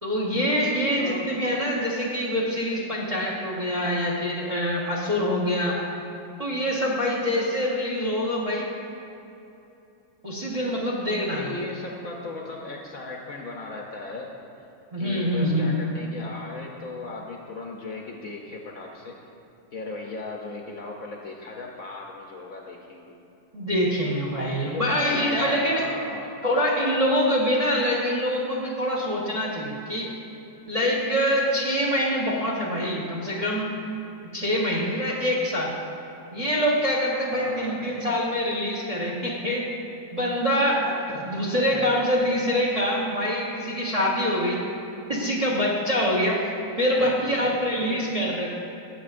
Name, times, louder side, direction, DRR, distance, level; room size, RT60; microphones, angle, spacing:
voice 1, 0.0-5.8 6.4-8.7 10.2-11.4 14.9-15.7 23.5-25.8 26.4-30.1 30.7-33.7 34.2-35.7 36.3-39.7 40.1-41.0 41.2-44.7 45.1-46.5 46.8-48.5, equal, 25° right, -4 dB, 0.8 m, -25 dB
voice 2, 0.9-1.3 11.3-14.3 15.0-19.1 19.7-23.2 24.7-26.4 37.3-37.8 41.1-42.0 47.0-47.6 47.9-48.0, left 3 dB, 60° left, 0 dB, 1.0 m, -37 dB
17.5 x 6.9 x 2.5 m, 2.8 s
omnidirectional pair, 2.0 m